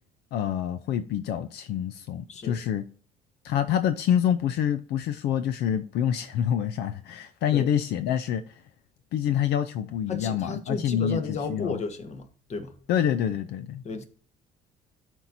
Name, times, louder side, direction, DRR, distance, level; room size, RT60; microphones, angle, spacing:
voice 1, 0.3-2.8 3.4-8.4 9.1-11.8 12.9-13.8, left 9 dB, 80° left, 0.5 m, -27 dB
voice 2, 2.3-2.6 7.5-7.7 10.1-12.8 13.8-14.1, left 4 dB, 40° left, 1.2 m, -33 dB
12.0 x 4.5 x 2.7 m
cardioid pair, 110°, 17 cm